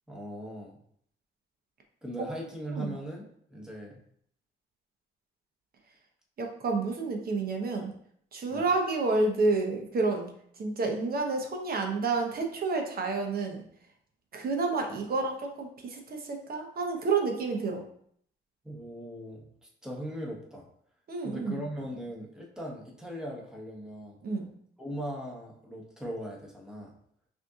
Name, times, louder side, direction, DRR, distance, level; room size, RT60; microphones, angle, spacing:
voice 1, 0.1-0.8 2.0-4.0 8.5-8.6 18.6-20.7 21.2-24.2 24.8-26.9, equal, 5° right, -2 dB, 1.1 m, -39 dB
voice 2, 6.4-7.9 8.3-10.3 10.6-13.6 14.3-17.8 21.1-21.6 24.2-24.5, right 3 dB, 50° right, 2 dB, 0.9 m, -29 dB
5.7 x 2.8 x 2.4 m, 0.65 s
cardioid pair, 90°, 20 cm